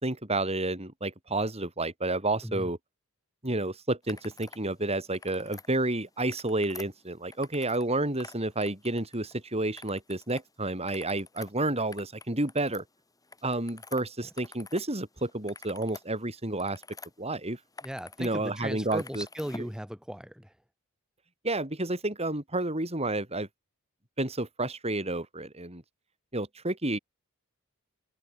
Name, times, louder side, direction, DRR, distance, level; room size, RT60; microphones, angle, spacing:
voice 1, 0.0-2.8 3.4-12.8 13.4-16.8 17.2-17.6 18.2-19.3 21.4-23.5 24.2-25.8 26.3-27.0, right 2 dB, 30° right, 6.1 m, -30 dB
sound 1, 4.0-4.6 5.0-5.7 6.2-7.9 8.1-9.4 9.8-10.4 10.8-14.9 15.2-17.1 17.5-18.3 18.6-19.7, left 3 dB, 15° left, 7.5 m, -48 dB
voice 2, 17.8-20.5, equal, 5° right, 3.6 m, -37 dB
open air
head